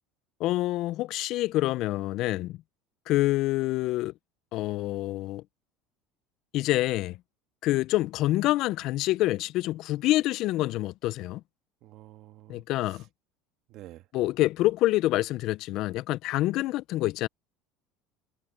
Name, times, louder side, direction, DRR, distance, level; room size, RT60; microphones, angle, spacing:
voice 1, 0.4-2.6 3.1-4.1 4.5-5.4 6.5-7.2 7.6-11.4 12.5-13.0 14.1-17.3, left 17 dB, 55° left, 0.3 m, -27 dB
voice 2, 11.8-13.0 13.7-14.1, right 15 dB, 55° right, 1.5 m, -49 dB
cardioid pair, 145°, 0 cm